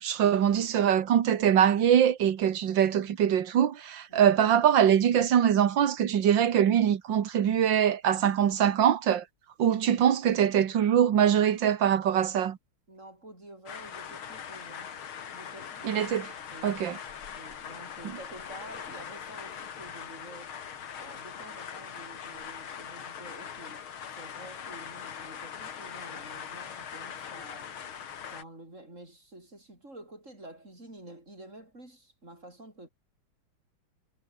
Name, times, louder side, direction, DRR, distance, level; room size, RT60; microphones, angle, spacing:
voice 1, 0.0-9.2 9.6-12.6 15.8-16.3 16.6-17.0, right 9 dB, 65° right, 2.0 m, -23 dB
voice 2, 12.9-14.9 15.3-16.2 16.5-16.7 17.3-20.6 20.9-27.7 28.3-32.9, right 1 dB, 35° right, 7.2 m, -49 dB
sound 1, 13.7-28.4, left 8 dB, 90° left, 2.7 m, -41 dB
omnidirectional pair, 2.2 m